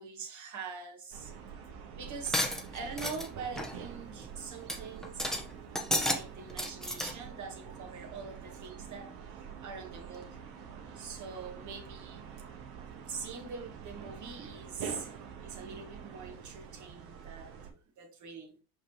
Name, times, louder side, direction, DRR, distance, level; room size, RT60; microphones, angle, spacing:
voice 1, 0.0-1.3 2.0-5.4 6.0-9.1 9.6-10.4 11.0-12.4 13.1-15.1 15.4-17.5 18.0-18.6, right 5 dB, 45° right, 2.1 m, -43 dB
sound 1, 1.1-17.7, right 7 dB, 65° right, 1.8 m, -46 dB
sound 2, 2.3-3.3 3.6-3.8 4.2-4.3 4.7-4.8 5.0-5.4 5.7-6.2 6.5-7.1, left 1 dB, ahead, 1.2 m, -31 dB
5.7 x 5.5 x 3.1 m
supercardioid pair, 100°, 39 cm